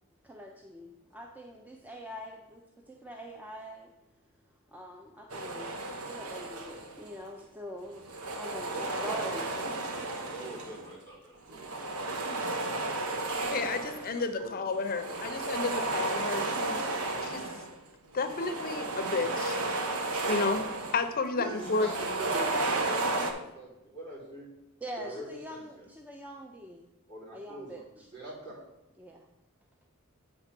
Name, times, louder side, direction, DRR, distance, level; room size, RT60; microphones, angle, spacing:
voice 1, 0.2-4.0 4.7-9.8 24.8-26.9 27.3-28.1 29.0-29.3, equal, 5° right, 2 dB, 0.4 m, -44 dB
sound 1, 5.3-7.2 7.9-10.9 11.5-14.3 14.7-17.8 18.1-21.1 21.5-23.3, right 2 dB, 85° right, 0.9 m, -33 dB
voice 2, 8.7-9.7 9.9-12.4 14.1-14.7 21.4-24.5 25.0-25.9 27.1-27.7 27.9-28.5, right 1 dB, 50° right, -6 dB, 3.0 m, -43 dB
voice 3, 13.4-16.8 17.2-17.5 18.1-19.6 20.3-20.6 20.9-21.9, left 4 dB, 45° left, 9 dB, 0.5 m, -31 dB
7.9 x 3.6 x 5.9 m, 0.93 s
head